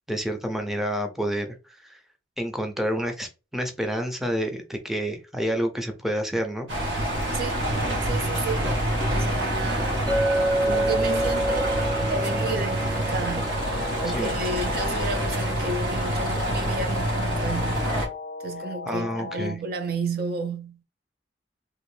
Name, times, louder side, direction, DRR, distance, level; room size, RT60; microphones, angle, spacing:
voice 1, 0.1-2.0 2.4-6.7 14.1-14.3 18.9-19.6, equal, ahead, 0.5 m, -29 dB
sound 1, 6.7-18.1, right 1 dB, 75° right, 1.0 m, -26 dB
voice 2, 7.3-7.7 8.0-10.0 10.5-13.7 14.0-17.9 18.4-20.8, right 3 dB, 55° right, 0.5 m, -32 dB
Chink clink, 10.1-14.3, right 1 dB, 25° right, 1.1 m, -28 dB
sound 2, 13.6-19.6, left 5 dB, 60° left, 0.4 m, -36 dB
3.1 x 2.5 x 3.2 m
head